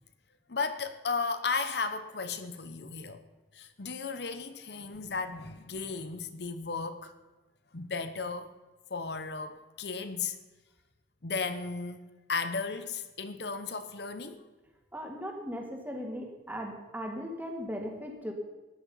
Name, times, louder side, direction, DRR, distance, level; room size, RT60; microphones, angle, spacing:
voice 1, 0.5-3.2 3.5-7.1 7.7-8.5 8.9-10.4 11.2-12.0 12.3-14.4, left 4 dB, 60° left, 10 dB, 0.9 m, -35 dB
voice 2, 14.9-18.3, equal, 10° right, 2 dB, 2.2 m, -38 dB
14.5 x 10.0 x 5.6 m, 1.2 s
head